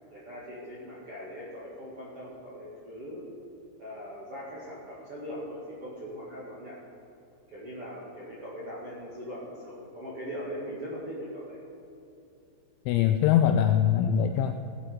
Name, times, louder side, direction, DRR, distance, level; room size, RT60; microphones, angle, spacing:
voice 1, 0.1-3.3 3.8-6.8 7.5-11.6, equal, 60° right, -7 dB, 1.5 m, -40 dB
voice 2, 12.9-14.5, left 9 dB, 85° left, 6 dB, 2.7 m, -22 dB
17.5 x 8.7 x 5.0 m, 2.8 s
omnidirectional pair, 5.8 m